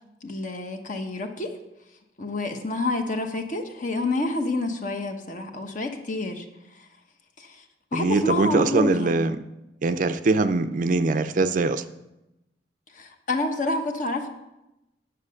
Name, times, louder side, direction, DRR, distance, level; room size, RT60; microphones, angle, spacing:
voice 1, 0.2-1.5 2.2-6.5 6.7-6.9 7.4-7.6 7.9-9.2 12.9-14.3, left 2 dB, 45° left, 5 dB, 1.0 m, -28 dB
voice 2, 7.9-9.4 9.8-11.8, right 3 dB, 45° right, 11 dB, 0.4 m, -22 dB
9.8 x 5.7 x 6.4 m, 0.93 s
head